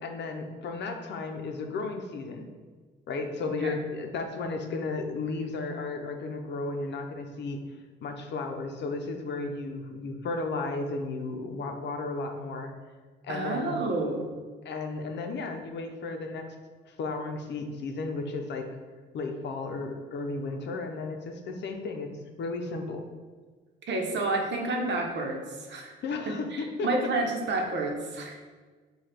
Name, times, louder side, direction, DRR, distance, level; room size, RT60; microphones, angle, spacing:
voice 1, 0.0-2.5 3.1-12.7 13.2-13.8 14.6-16.5 16.9-18.7 19.1-22.1 22.4-23.1 26.0-26.9, left 3 dB, 60° left, 4 dB, 0.6 m, -34 dB
voice 2, 13.3-14.3 23.9-25.9 26.5-28.4, right 2 dB, 65° right, 1 dB, 0.9 m, -30 dB
4.8 x 2.4 x 4.3 m, 1.4 s
cardioid pair, 90°, 20 cm